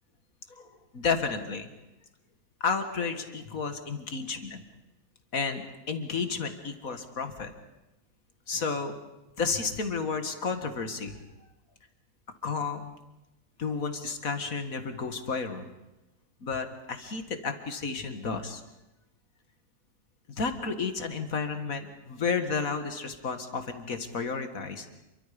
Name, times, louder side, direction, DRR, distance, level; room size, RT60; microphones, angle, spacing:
voice 1, 0.9-1.7 2.6-4.6 5.3-7.5 8.5-9.0 9.4-11.2 12.4-12.9 13.6-15.7 16.4-18.6 20.4-24.9, left 5 dB, 65° left, 7 dB, 2.2 m, -32 dB
28.5 x 23.5 x 5.2 m, 0.99 s
omnidirectional pair, 1.6 m